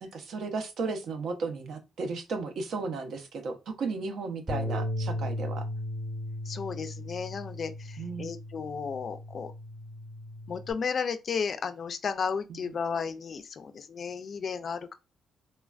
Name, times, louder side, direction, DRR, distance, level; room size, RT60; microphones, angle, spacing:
voice 1, 0.0-5.7 8.0-8.3 12.5-12.6, right 4 dB, 70° right, 0.6 m, -34 dB
Bass guitar, 4.5-10.7, left 1 dB, 15° right, 0.8 m, -36 dB
voice 2, 6.5-9.5 10.5-14.9, left 6 dB, 50° left, 0.3 m, -33 dB
3.2 x 2.2 x 2.3 m
cardioid pair, 90°, 0 cm